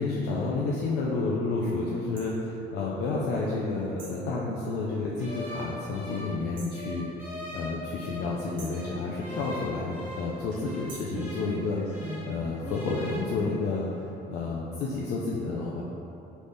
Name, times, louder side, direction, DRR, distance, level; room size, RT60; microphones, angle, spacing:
voice 1, 0.0-13.9 14.3-15.8, left 3 dB, 65° left, -4 dB, 0.5 m, -30 dB
sound 1, 2.2-2.3 4.0-4.3 6.6-6.8 8.6-8.9 10.9-11.2, right 3 dB, 50° right, 0.8 m, -46 dB
sound 2, 5.2-8.4 8.7-12.4 12.6-13.2, left 1 dB, 10° right, 0.8 m, -41 dB
sound 3, 8.0-14.1, right 1 dB, 90° right, 1.4 m, -42 dB
4.0 x 3.3 x 3.4 m, 2.9 s
cardioid pair, 170°, 18 cm